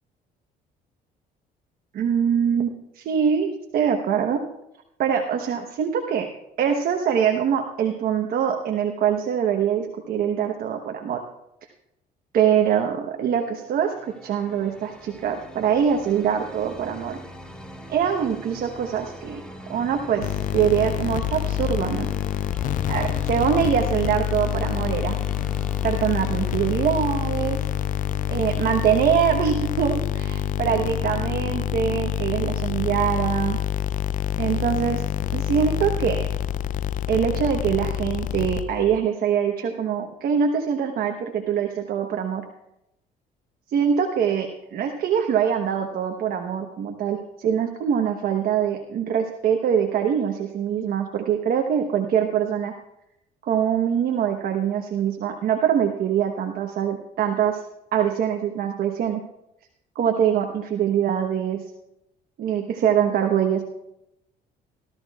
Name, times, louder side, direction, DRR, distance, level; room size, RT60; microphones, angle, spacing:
voice 1, 1.9-2.7 2.9-4.4 5.0-6.3 6.6-11.2 12.3-17.2 17.9-19.4 19.7-22.1 22.9-25.2 25.8-27.6 28.3-33.6 34.4-35.0 35.3-36.3 37.1-42.4 43.7-52.7 53.4-57.6 57.9-59.2 59.9-61.6 62.4-63.6, right 8 dB, 60° right, 4 dB, 1.1 m, -23 dB
sound 1, 13.5-31.3, equal, 5° left, 1.7 m, -43 dB
sound 2, 20.2-39.0, left 10 dB, 50° left, 0.4 m, -27 dB
17.5 x 13.5 x 2.4 m, 0.85 s
cardioid pair, 110°, 17 cm